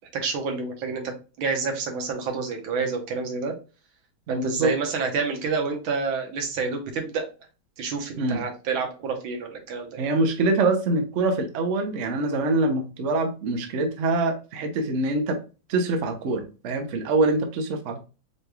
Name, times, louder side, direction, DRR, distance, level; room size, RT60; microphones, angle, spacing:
voice 1, 0.1-3.6 4.3-7.3 7.8-10.0, right 4 dB, 85° right, 3 dB, 1.8 m, -28 dB
voice 2, 4.3-4.7 8.2-8.4 10.0-15.4 15.7-18.0, right 2 dB, 55° right, 5 dB, 0.8 m, -24 dB
4.9 x 3.2 x 2.3 m, 0.33 s
omnidirectional pair, 2.2 m